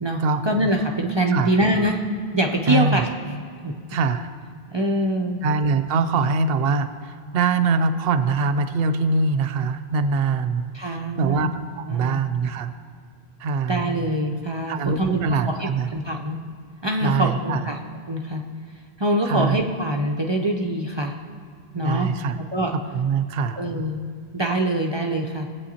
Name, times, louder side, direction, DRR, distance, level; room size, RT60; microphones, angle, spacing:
voice 1, 0.0-2.0 2.3-3.1 3.6-3.7 4.7-5.4 10.7-11.5 11.9-12.2 13.7-16.4 16.8-17.8 18.1-18.4 19.0-21.1 21.7-22.1 22.5-22.7 23.6-24.0 24.3-25.5, right 1 dB, 35° right, 0 dB, 0.5 m, -24 dB
voice 2, 2.7-3.0 3.9-4.3 5.4-11.5 11.8-12.7 13.4-13.8 14.7-15.9 17.0-17.6 19.3-19.6 21.8-22.4 22.9-23.6, right 4 dB, 70° right, 10 dB, 0.8 m, -23 dB
19.5 x 8.4 x 2.8 m, 2.1 s
omnidirectional pair, 1.0 m